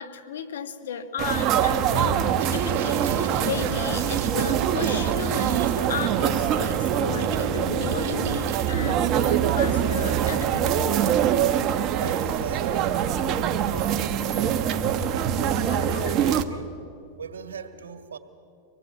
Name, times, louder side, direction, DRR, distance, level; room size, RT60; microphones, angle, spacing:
voice 1, 0.0-2.2 2.5-10.8 15.7-16.0, left 7 dB, 85° left, 1.7 m, -34 dB
sound 1, 1.2-16.4, right 9 dB, 45° right, 1.4 m, -24 dB
sound 2, 2.4-10.0, right 7 dB, 60° right, 2.1 m, -38 dB
voice 2, 11.9-13.3 13.7-16.8 17.2-18.2, right 6 dB, 90° right, 2.0 m, -39 dB
25.5 x 19.0 x 8.4 m
hypercardioid pair, 115°, 0 cm